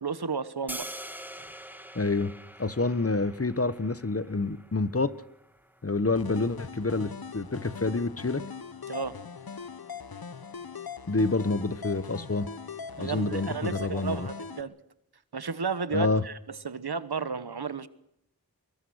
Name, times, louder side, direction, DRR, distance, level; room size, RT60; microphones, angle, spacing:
voice 1, 0.0-0.9 8.9-9.2 13.0-14.7 15.3-17.9, right 5 dB, 90° right, 14 dB, 1.2 m, -33 dB
sound 1, 0.7-6.8, equal, 5° right, 2.0 m, -45 dB
voice 2, 1.9-2.3 2.6-5.1 5.8-8.4 11.1-12.5 13.0-14.3 15.9-16.2, left 3 dB, 40° left, 15 dB, 1.1 m, -28 dB
sound 2, 6.1-14.6, left 5 dB, 70° left, 1.0 m, -41 dB
23.0 x 23.0 x 6.3 m, 0.79 s
wide cardioid pair, 50°, 37 cm